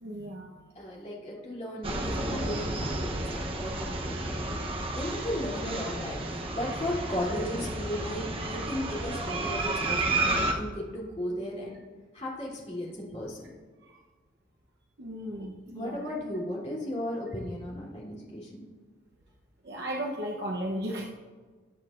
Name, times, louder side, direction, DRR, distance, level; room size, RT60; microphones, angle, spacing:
voice 1, 0.0-0.6 13.8-14.0 15.0-16.0 19.6-21.0, equal, 60° right, -1 dB, 0.9 m, -35 dB
voice 2, 0.7-11.8 12.1-13.5 15.3-15.4 15.7-18.6, left 1 dB, 35° left, -6 dB, 3.0 m, -36 dB
sound 1, 1.8-10.5, right 2 dB, 30° right, 0.8 m, -31 dB
20.0 x 7.5 x 2.5 m, 1.4 s
head